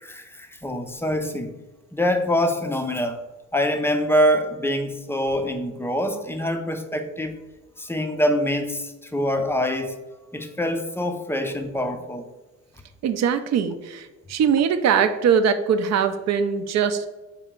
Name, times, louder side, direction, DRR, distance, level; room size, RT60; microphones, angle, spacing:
voice 1, 0.0-1.5 1.9-3.2 3.5-7.4 7.8-10.0 10.3-12.2, equal, 10° left, 6 dB, 0.4 m, -24 dB
voice 2, 13.0-17.1, right 7 dB, 60° right, 9 dB, 0.5 m, -21 dB
4.4 x 2.9 x 3.7 m, 1.1 s
cardioid pair, 90°, 30 cm